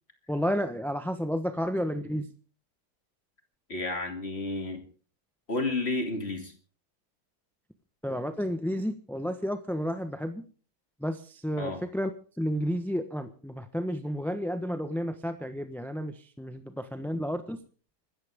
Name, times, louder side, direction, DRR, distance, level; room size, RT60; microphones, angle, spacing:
voice 1, 0.3-2.3 8.0-10.4 11.0-12.1 12.4-17.6, equal, ahead, 8 dB, 0.9 m, -31 dB
voice 2, 3.7-4.8 5.5-6.5 11.6-11.8, left 2 dB, 35° left, 5 dB, 3.2 m, -31 dB
25.5 x 13.5 x 3.7 m, 0.39 s
omnidirectional pair, 1.9 m